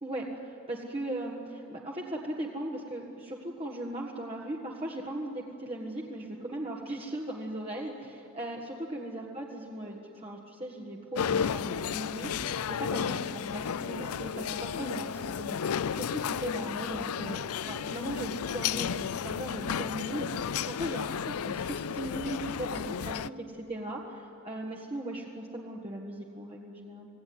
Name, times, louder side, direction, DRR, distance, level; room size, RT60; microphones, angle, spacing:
voice 1, 0.0-17.4 17.7-27.1, right 1 dB, 25° right, -2 dB, 1.7 m, -38 dB
sound 1, 11.1-23.3, left 7 dB, 85° left, 0.5 m, -33 dB
26.5 x 17.5 x 9.5 m, 2.8 s
head